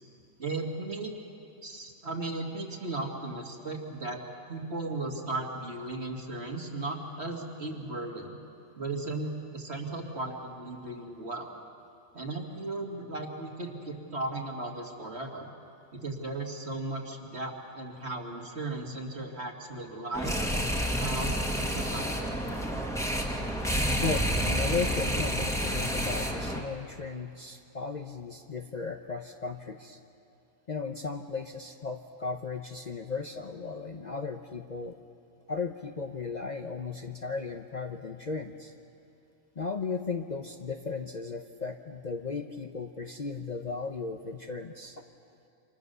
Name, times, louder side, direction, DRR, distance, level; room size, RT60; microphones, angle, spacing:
voice 1, 0.4-1.1 1.6-4.2 4.5-8.4 8.7-11.5 12.1-15.5 15.9-20.4 21.0-22.3, right 2 dB, 50° right, 2 dB, 2.5 m, -36 dB
sound 1, 20.1-26.6, equal, ahead, 2.1 m, -29 dB
voice 2, 24.0-30.0 30.7-35.0 35.5-38.7 39.6-45.0, left 4 dB, 35° left, 4 dB, 0.9 m, -36 dB
29.0 x 26.0 x 6.9 m, 2.7 s
omnidirectional pair, 1.4 m